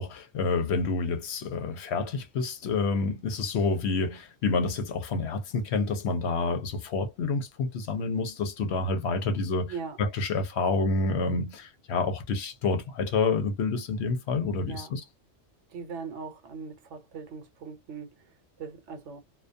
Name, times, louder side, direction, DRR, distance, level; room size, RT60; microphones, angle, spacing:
voice 1, 0.0-15.0, left 3 dB, 65° left, 0.8 m, -28 dB
voice 2, 15.7-19.2, right 5 dB, 70° right, 1.0 m, -40 dB
2.2 x 2.2 x 2.5 m
omnidirectional pair, 1.3 m